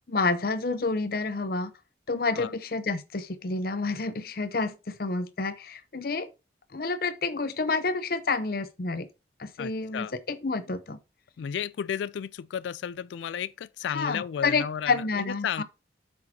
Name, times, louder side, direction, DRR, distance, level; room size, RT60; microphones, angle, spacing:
voice 1, 0.1-1.7 2.1-6.3 6.7-9.1 9.4-11.0 13.9-15.6, left 3 dB, 55° left, 0.7 m, -29 dB
voice 2, 9.6-10.1 11.4-15.6, left 8 dB, 80° left, 0.3 m, -33 dB
8.5 x 6.5 x 2.8 m
head